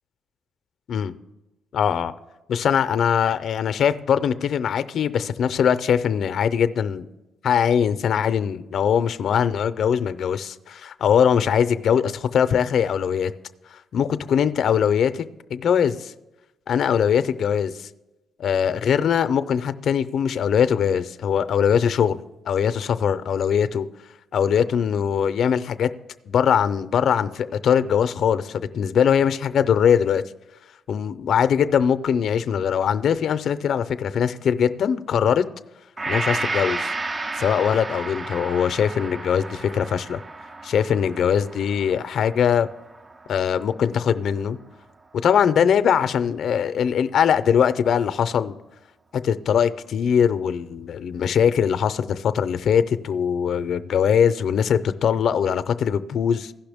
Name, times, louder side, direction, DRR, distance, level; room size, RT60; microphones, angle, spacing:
voice 1, 1.7-2.1 2.5-7.1 7.4-13.3 13.7-15.2 15.5-16.1 16.7-17.9 18.4-22.2 22.5-23.9 24.3-25.9 26.3-30.2 30.9-35.4 36.1-36.9 37.3-40.2 40.6-42.7 43.3-44.6 45.2-48.5 49.1-56.5, left 8 dB, 65° left, 0.5 m, -21 dB
Gong, 36.0-44.3 44.7-44.8, right 3 dB, 25° right, 0.3 m, -32 dB
16.0 x 5.8 x 3.5 m
cardioid pair, 90°, 0 cm